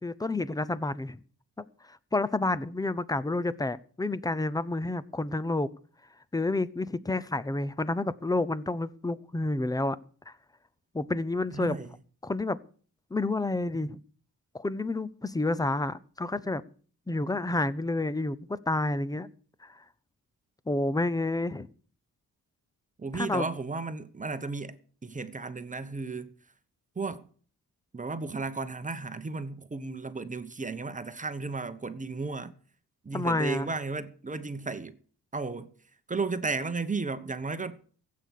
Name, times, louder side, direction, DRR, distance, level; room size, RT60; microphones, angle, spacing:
voice 1, 0.0-1.2 1.9-5.7 6.3-10.0 10.3-10.4 10.9-11.8 12.2-12.6 13.1-14.0 14.5-16.6 17.1-19.3 19.6-19.7 20.7-21.7 23.1-23.5 33.1-33.7, left 2 dB, 10° left, 0.7 m, -29 dB
voice 2, 11.5-11.9 23.0-26.3 26.9-27.3 27.9-32.5 33.0-35.0 35.3-35.7 36.1-37.8, right 3 dB, 20° right, 1.1 m, -34 dB
16.0 x 8.6 x 6.5 m
wide cardioid pair, 120°, 36 cm